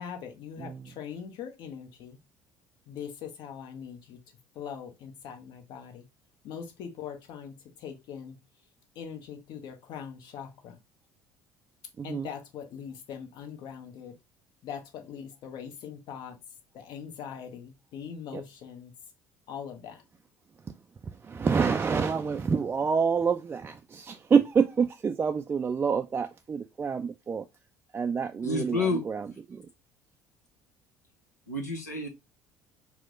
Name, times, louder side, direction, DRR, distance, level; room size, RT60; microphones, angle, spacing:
voice 1, 0.0-2.2 2.9-4.2 4.5-6.1 6.4-8.4 8.9-10.8 12.0-14.1 14.6-16.4 16.7-18.9 19.5-20.0, left 7 dB, 55° left, 0.9 m, -41 dB
voice 2, 0.6-0.9 12.0-12.3 18.3-18.4 21.2-27.4 27.9-29.6, right 6 dB, 25° right, 0.3 m, -27 dB
voice 3, 28.4-29.0 31.5-32.1, left 3 dB, 90° left, 0.8 m, -29 dB
4.5 x 2.1 x 3.7 m
figure-of-eight pair, 60°, 9 cm